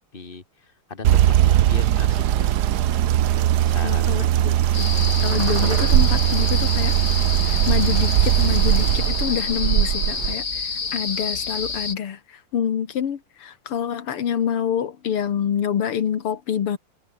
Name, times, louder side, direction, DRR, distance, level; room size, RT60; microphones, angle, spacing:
voice 1, 0.0-2.5 3.6-4.3, left 4 dB, 25° left, 2.6 m, -38 dB
sound 1, 1.0-10.3, right 12 dB, 65° right, 1.1 m, -19 dB
voice 2, 3.8-7.0 7.4-16.8, left 8 dB, 85° left, 2.6 m, -27 dB
sound 2, 4.7-11.9, left 5 dB, 40° left, 2.6 m, -28 dB
omnidirectional pair, 2.4 m